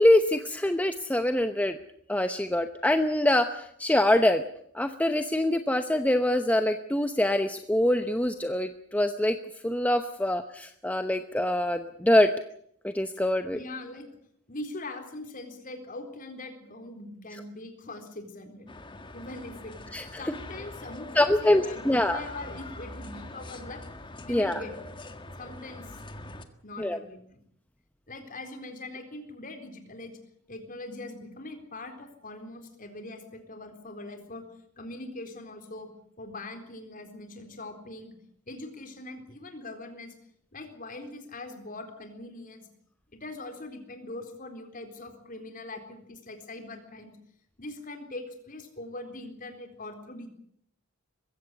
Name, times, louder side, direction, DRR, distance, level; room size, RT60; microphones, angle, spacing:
voice 1, 0.0-1.8 2.1-4.4 4.7-9.4 9.6-12.3 12.8-13.6 19.9-20.0 21.1-22.2 24.3-24.6 26.8-27.0, left 1 dB, 5° left, 8 dB, 0.9 m, -24 dB
voice 2, 13.5-14.1 14.5-18.7 19.1-19.9 20.2-23.8 24.2-24.7 25.4-26.0 26.6-27.4 28.1-30.2 30.5-34.4 34.8-35.9 36.2-38.1 38.5-40.1 40.5-42.7 43.1-47.1 47.6-50.3, left 2 dB, 40° left, 6 dB, 4.0 m, -42 dB
sound 1, 18.7-26.4, left 2 dB, 25° left, 1.7 m, -43 dB
22.0 x 16.0 x 9.7 m, 0.68 s
head